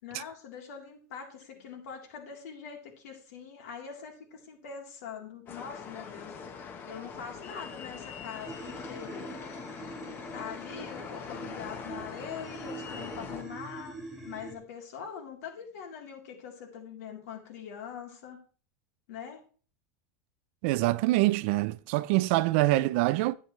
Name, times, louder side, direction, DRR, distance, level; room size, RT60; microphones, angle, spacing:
voice 1, 0.0-6.4 6.9-9.3 10.3-14.0 14.2-18.4 19.1-19.4, left 7 dB, 70° left, 3.4 m, -43 dB
sound 1, 5.5-13.4, left 6 dB, 25° left, 1.1 m, -42 dB
sound 2, 8.4-14.5, right 2 dB, ahead, 2.1 m, -44 dB
voice 2, 20.6-23.3, right 18 dB, 50° right, 0.4 m, -25 dB
11.0 x 8.7 x 3.2 m
supercardioid pair, 165°, 8 cm